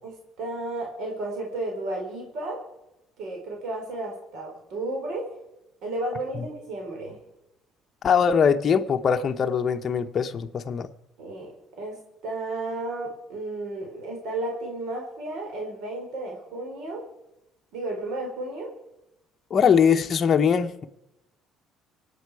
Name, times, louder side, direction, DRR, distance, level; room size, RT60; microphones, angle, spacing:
voice 1, 0.0-2.6 3.2-5.3 5.8-7.2 11.2-11.5 11.8-12.0 12.2-17.0 17.7-18.7, right 2 dB, 65° right, 4.0 m, -33 dB
voice 2, 8.0-10.9 19.5-20.9, left 7 dB, 35° left, 0.8 m, -21 dB
25.0 x 8.4 x 4.8 m
cardioid pair, 145°, 0 cm